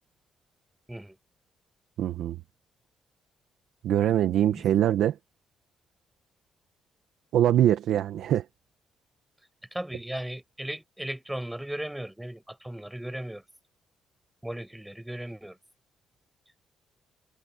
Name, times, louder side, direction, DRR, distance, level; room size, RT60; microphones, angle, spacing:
voice 1, 2.0-2.4 3.8-5.2 7.3-8.5, right 11 dB, 75° right, 1.2 m, -23 dB
voice 2, 9.7-13.4 14.4-15.6, right 1 dB, 5° right, 6.5 m, -36 dB
cardioid pair, 90°, 0 cm